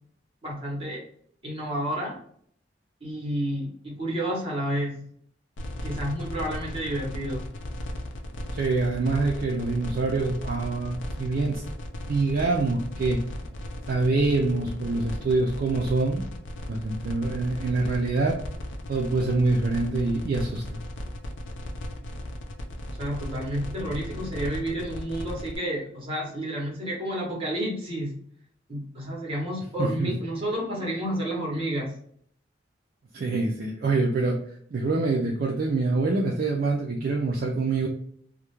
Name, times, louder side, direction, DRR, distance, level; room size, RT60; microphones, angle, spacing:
voice 1, 0.4-1.0 1.4-2.2 3.0-5.1 5.8-7.5 23.0-28.1 28.7-31.9, equal, 30° right, -2 dB, 0.9 m, -30 dB
sound 1, 5.6-25.6, left 1 dB, 70° left, 0.4 m, -36 dB
voice 2, 8.5-11.6 12.0-13.2 13.9-16.3 16.7-18.4 18.9-20.8 29.8-30.1 33.1-34.4 34.7-37.9, right 3 dB, 50° right, 0 dB, 0.3 m, -25 dB
2.3 x 2.1 x 2.9 m, 0.63 s
head